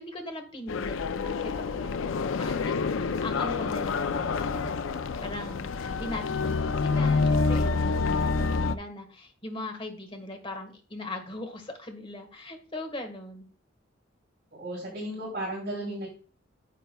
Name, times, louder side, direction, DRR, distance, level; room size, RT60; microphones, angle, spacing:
voice 1, 0.0-4.7 5.2-13.4, left 1 dB, 30° left, 5 dB, 1.5 m, -40 dB
sound 1, 0.7-8.8, left 4 dB, 90° left, 0.5 m, -27 dB
voice 2, 14.5-16.1, right 1 dB, 55° right, -7 dB, 4.3 m, -34 dB
9.6 x 8.1 x 2.3 m, 0.39 s
head